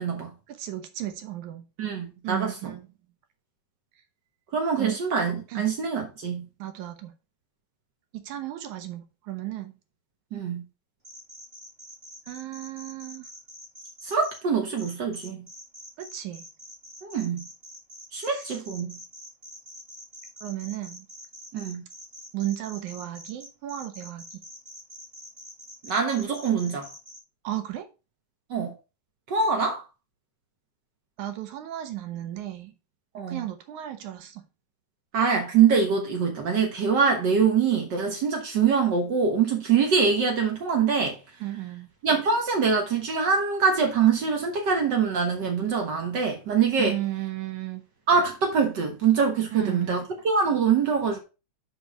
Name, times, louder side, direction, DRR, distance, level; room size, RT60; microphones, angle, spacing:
voice 1, 0.5-1.6 2.2-2.9 4.8-5.0 5.5-5.7 6.6-7.1 8.1-9.7 12.3-13.3 16.0-16.4 18.2-18.4 20.4-21.1 22.3-24.4 27.4-27.9 31.2-32.7 33.3-34.4 41.4-41.9 46.8-47.8 49.5-50.1, right 14 dB, 70° right, 2.2 m, -34 dB
voice 2, 1.8-2.7 4.5-6.4 10.3-10.6 14.0-15.4 17.0-17.4 18.1-19.0 21.5-21.8 25.8-26.9 28.5-28.7 29.3-29.8 33.1-33.4 35.1-41.2 42.0-47.0 48.1-51.2, right 6 dB, 85° right, 0.9 m, -24 dB
sound 1, 11.0-14.4 14.8-27.2, equal, 20° right, 2.1 m, -45 dB
6.2 x 5.5 x 5.6 m
omnidirectional pair, 4.0 m